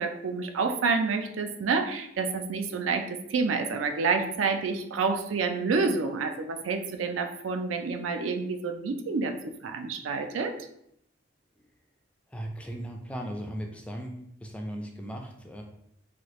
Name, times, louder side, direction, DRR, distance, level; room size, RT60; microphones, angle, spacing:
voice 1, 0.0-9.3 9.6-10.5, right 4 dB, 85° right, 6 dB, 0.4 m, -28 dB
voice 2, 12.3-15.6, equal, 5° left, 2 dB, 0.3 m, -37 dB
3.0 x 2.4 x 3.0 m, 0.74 s
head